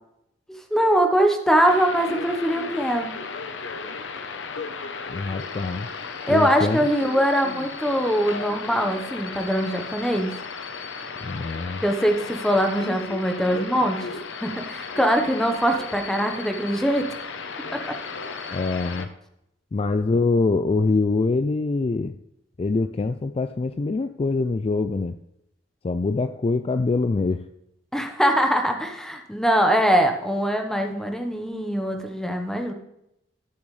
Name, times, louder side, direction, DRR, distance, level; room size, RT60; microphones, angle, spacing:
voice 1, 0.7-3.1 6.2-10.4 11.8-17.1 17.7-18.0 27.9-32.7, equal, 5° left, 4 dB, 1.0 m, -22 dB
sound 1, 1.6-19.1, left 4 dB, 90° left, 0.8 m, -35 dB
voice 2, 5.1-5.9 6.3-6.9 11.2-11.8 18.5-19.1 19.7-22.2 22.6-25.2 25.8-27.4, left 3 dB, 30° left, 9 dB, 0.3 m, -24 dB
14.0 x 7.1 x 3.2 m, 0.80 s
head